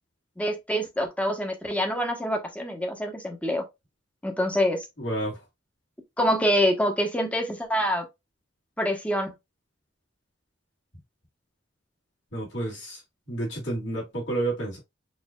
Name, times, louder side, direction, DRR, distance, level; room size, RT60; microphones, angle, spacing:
voice 1, 0.4-3.6 4.2-4.8 6.2-8.0 8.8-9.3, equal, 5° left, 0.9 m, -26 dB
voice 2, 5.0-5.4 12.3-13.0 13.3-14.8, right 2 dB, 70° left, 2.8 m, -30 dB
6.3 x 2.7 x 2.2 m
head